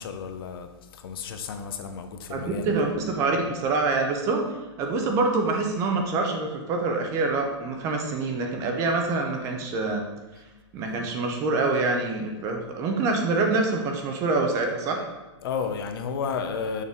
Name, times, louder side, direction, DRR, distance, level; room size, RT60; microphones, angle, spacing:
voice 1, 0.0-2.7 15.4-16.8, left 6 dB, 50° left, 7 dB, 0.6 m, -32 dB
voice 2, 2.3-4.5 4.8-10.0 10.7-15.0, right 3 dB, 20° right, 2 dB, 0.6 m, -25 dB
6.4 x 5.4 x 3.5 m, 1.2 s
hypercardioid pair, 165°, 15 cm